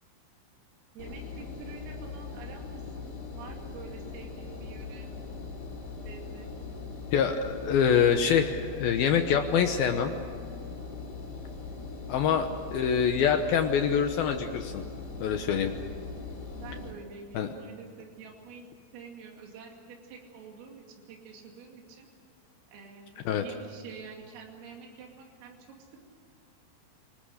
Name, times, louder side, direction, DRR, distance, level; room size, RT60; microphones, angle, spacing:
Engine, 1.0-16.9, left 4 dB, 30° left, 2.3 m, -41 dB
voice 1, 1.0-5.1 6.0-6.5 16.6-18.7 18.9-22.1 22.7-25.8, right 5 dB, 85° right, 1 dB, 5.2 m, -47 dB
voice 2, 7.1-10.1 12.1-14.8 15.2-15.7 17.3-17.5 23.3-23.4, left 7 dB, 80° left, 6 dB, 2.1 m, -25 dB
30.0 x 19.5 x 6.6 m, 2.3 s
omnidirectional pair, 5.8 m